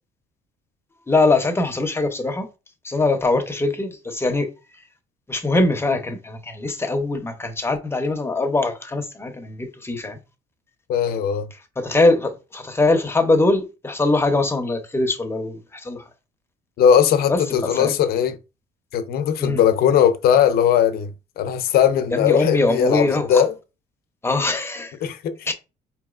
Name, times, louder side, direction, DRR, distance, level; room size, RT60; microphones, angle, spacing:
voice 1, 1.1-2.5 2.8-4.5 5.3-10.2 11.8-16.0 17.3-17.9 19.4-19.6 22.1-23.4 24.2-24.9 25.5-25.6, left 2 dB, 15° left, 0.7 m, -22 dB
voice 2, 10.9-11.5 16.8-18.4 18.9-23.5 25.0-25.4, left 8 dB, 65° left, 0.6 m, -19 dB
4.5 x 3.0 x 2.4 m
cardioid pair, 110°, 17 cm